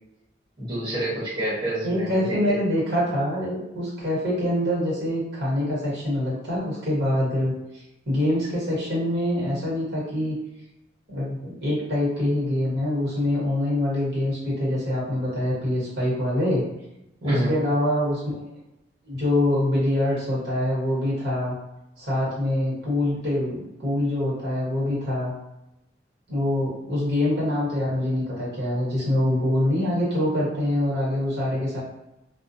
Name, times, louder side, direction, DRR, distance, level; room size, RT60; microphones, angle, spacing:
voice 1, 0.6-2.6 17.2-17.6, right 1 dB, 25° right, -12 dB, 1.2 m, -27 dB
voice 2, 1.8-10.3 11.1-16.6 17.2-18.5 19.0-21.5 22.0-25.3 26.3-31.8, left 1 dB, 55° right, -7 dB, 1.3 m, -25 dB
2.3 x 2.2 x 2.6 m, 0.90 s
head